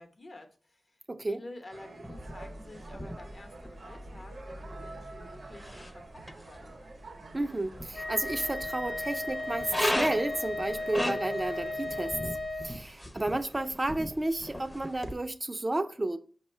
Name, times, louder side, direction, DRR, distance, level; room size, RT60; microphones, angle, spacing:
voice 1, 0.0-6.1 6.4-6.7, left 2 dB, 50° left, 0.8 m, -50 dB
voice 2, 1.1-1.4 7.3-12.2 12.6-16.2, right 2 dB, 30° right, 0.3 m, -32 dB
sound 1, 1.7-12.1, right 3 dB, 75° right, 0.6 m, -48 dB
sound 2, 2.0-15.1, left 1 dB, 15° left, 0.6 m, -39 dB
Wind instrument woodwind instrument, 7.9-12.8, left 2 dB, 80° left, 0.6 m, -35 dB
5.3 x 2.2 x 4.3 m
cardioid pair, 50°, 0 cm